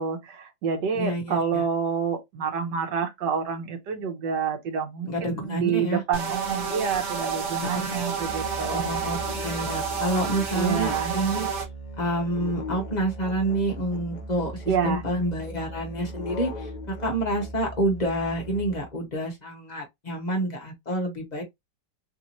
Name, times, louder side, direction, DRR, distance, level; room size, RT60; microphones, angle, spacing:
voice 1, 0.0-8.9 10.5-11.1 14.7-15.0, right 6 dB, 75° right, 1.5 m, -28 dB
voice 2, 0.9-1.6 5.1-6.0 8.7-9.2 9.4-11.5 12.0-21.4, right 1 dB, 35° left, 0.7 m, -28 dB
sound 1, 6.1-11.6, right 6 dB, 55° right, 1.2 m, -30 dB
Musical instrument, 8.2-19.0, right 1 dB, 85° left, 0.4 m, -38 dB
3.4 x 2.6 x 2.9 m
omnidirectional pair, 1.9 m